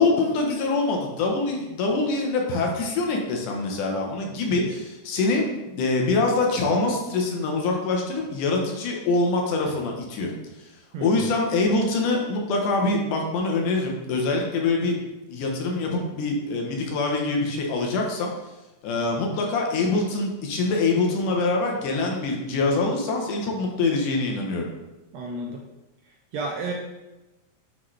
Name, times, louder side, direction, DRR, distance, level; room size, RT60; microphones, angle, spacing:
voice 1, 0.0-10.3 11.0-15.0 15.3-18.3 18.8-24.7, left 3 dB, 80° left, 0 dB, 2.5 m, -24 dB
voice 2, 10.9-11.3 25.1-25.6 26.3-26.7, right 2 dB, 80° right, 0 dB, 1.6 m, -31 dB
9.6 x 3.8 x 3.2 m, 1.0 s
omnidirectional pair, 3.6 m